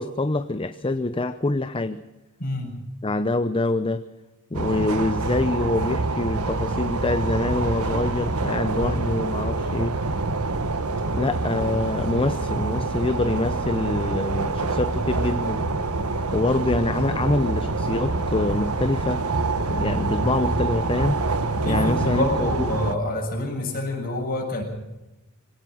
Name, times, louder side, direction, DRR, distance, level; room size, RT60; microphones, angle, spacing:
voice 1, 0.0-2.0 3.0-4.0 4.5-10.0 11.1-15.6 16.3-19.2 19.7-21.2 21.7-22.7, left 2 dB, 25° left, 11 dB, 0.7 m, -25 dB
voice 2, 2.4-2.7 8.7-9.0 21.6-24.6, left 1 dB, 45° left, 0 dB, 7.3 m, -27 dB
sound 1, 4.5-22.9, right 3 dB, 85° right, 1.5 m, -26 dB
25.0 x 18.0 x 6.4 m, 1.0 s
head